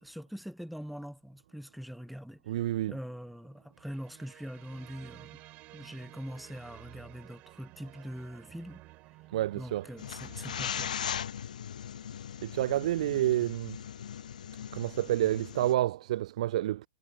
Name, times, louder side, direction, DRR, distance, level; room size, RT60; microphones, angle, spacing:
voice 1, 0.0-2.4 2.9-5.3 5.7-8.8 9.5-10.9, equal, ahead, 1.1 m, -43 dB
voice 2, 2.5-3.0 9.3-9.9 12.4-13.8 14.7-16.9, right 13 dB, 50° right, 0.4 m, -29 dB
sound 1, 3.7-11.0, right 19 dB, 30° right, 5.2 m, -53 dB
sound 2, 10.0-15.7, left 9 dB, 60° left, 0.9 m, -39 dB
figure-of-eight pair, 110°, 5 cm